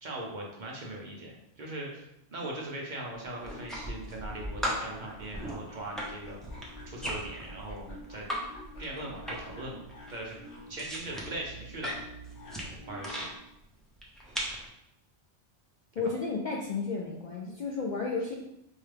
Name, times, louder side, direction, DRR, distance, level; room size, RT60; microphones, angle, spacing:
voice 1, 0.0-6.4 6.8-8.3 8.8-9.8 10.1-10.4 10.7-11.9 12.9-13.3, right 1 dB, 50° right, -2 dB, 0.7 m, -40 dB
sound 1, 3.2-13.4, equal, 85° left, 1.2 m, -46 dB
sound 2, 3.4-4.3 4.6-8.4 8.7-9.6 9.9-13.3 14.0-14.7, equal, ahead, 0.4 m, -37 dB
voice 2, 16.0-18.4, left 4 dB, 60° left, -2 dB, 0.5 m, -32 dB
4.5 x 2.2 x 3.3 m, 0.81 s
omnidirectional pair, 1.2 m